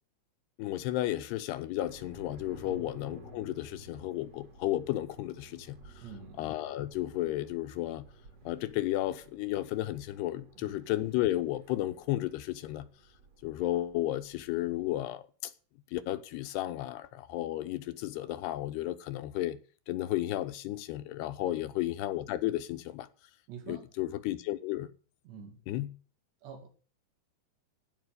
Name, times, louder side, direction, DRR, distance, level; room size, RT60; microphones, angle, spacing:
voice 1, 0.6-6.0 6.4-8.1 8.5-12.9 13.4-15.5 15.9-19.6 19.9-23.1 23.7-24.9 25.7-25.9, left 15 dB, 80° left, 2.8 m, -33 dB
sound 1, 1.8-15.0, right 1 dB, 40° right, 3.6 m, -54 dB
voice 2, 6.0-6.5 10.6-10.8 21.4-21.7 23.5-23.9 25.2-25.6 26.4-26.7, right 6 dB, 90° right, 4.9 m, -47 dB
16.0 x 5.6 x 7.9 m
omnidirectional pair, 4.8 m